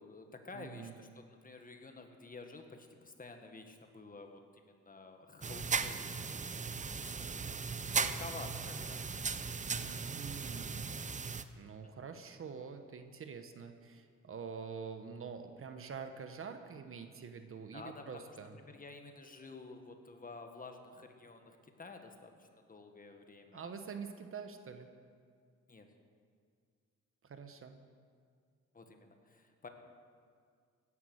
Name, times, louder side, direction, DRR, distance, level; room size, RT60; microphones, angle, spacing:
voice 1, 0.0-6.0 6.5-9.1 11.8-11.9 17.7-23.6 25.7-25.9 28.7-29.7, left 3 dB, 30° left, 5 dB, 1.8 m, -51 dB
voice 2, 0.5-0.9 9.7-10.9 11.6-18.6 23.5-24.9 27.2-27.7, right 6 dB, 45° right, 7 dB, 1.2 m, -46 dB
sound 1, 5.4-11.4, right 5 dB, 25° right, 0.7 m, -37 dB
16.5 x 11.0 x 6.5 m, 2.1 s
cardioid pair, 90°, 30 cm